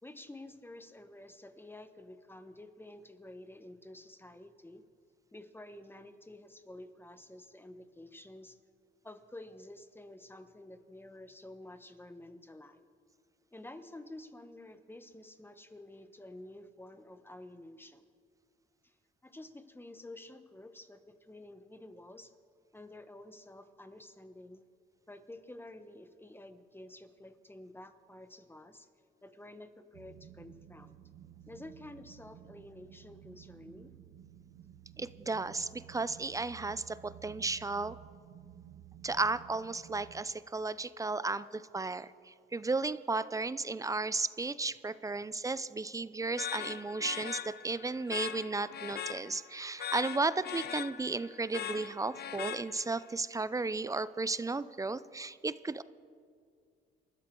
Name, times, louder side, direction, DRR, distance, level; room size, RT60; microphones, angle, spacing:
voice 1, 0.0-4.8 5.3-8.6 9.0-12.9 13.5-18.0 18.8-18.9 19.2-22.3 22.7-24.6 25.1-28.9 29.2-31.0 31.5-33.9, left 1 dB, 10° left, 9 dB, 1.1 m, -50 dB
sound 1, 29.9-40.2, right 10 dB, 75° right, 0.9 m, -54 dB
voice 2, 35.0-38.0 39.0-55.8, right 3 dB, 15° right, 15 dB, 0.5 m, -34 dB
sound 2, 46.4-53.1, left 9 dB, 55° left, 0.7 m, -41 dB
28.0 x 13.0 x 3.8 m, 2.2 s
cardioid pair, 90°, 20 cm